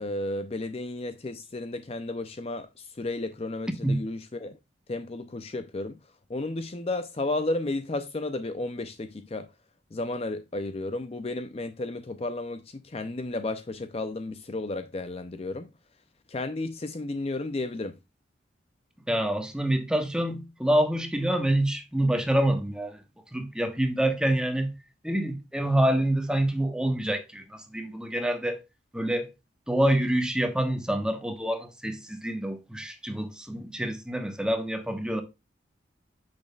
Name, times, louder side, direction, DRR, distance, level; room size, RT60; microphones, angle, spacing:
voice 1, 0.0-4.6 4.9-6.0 6.3-9.5 9.9-15.7 16.3-18.0, left 2 dB, 30° left, 0.5 m, -33 dB
voice 2, 19.1-23.0 23.3-24.7 25.0-28.6 28.9-29.3 29.7-35.2, right 1 dB, 5° right, 1.2 m, -26 dB
8.5 x 6.4 x 2.3 m
head